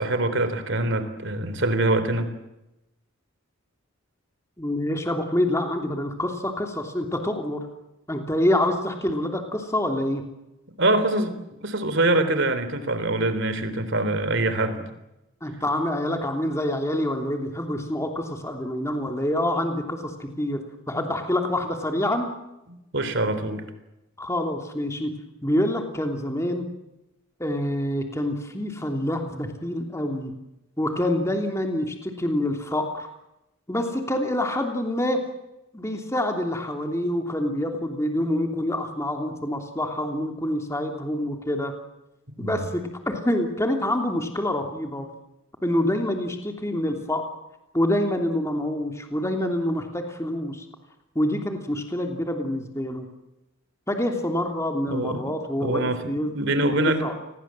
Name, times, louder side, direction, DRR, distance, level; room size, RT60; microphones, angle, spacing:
voice 1, 0.0-2.3 10.8-11.4 11.6-15.0 22.7-23.6 42.4-42.6 54.9-55.3 55.6-57.0, right 2 dB, 55° right, 11 dB, 3.7 m, -24 dB
voice 2, 4.6-7.7 8.1-10.2 15.4-20.6 20.9-22.3 24.2-25.1 25.4-26.7 27.4-30.3 30.8-33.1 33.7-35.2 35.7-41.7 42.4-45.1 45.6-47.3 47.7-50.7 51.1-53.1 53.9-56.3 56.8-57.1, left 1 dB, 15° left, 4 dB, 3.1 m, -26 dB
29.0 x 21.0 x 7.7 m, 0.92 s
head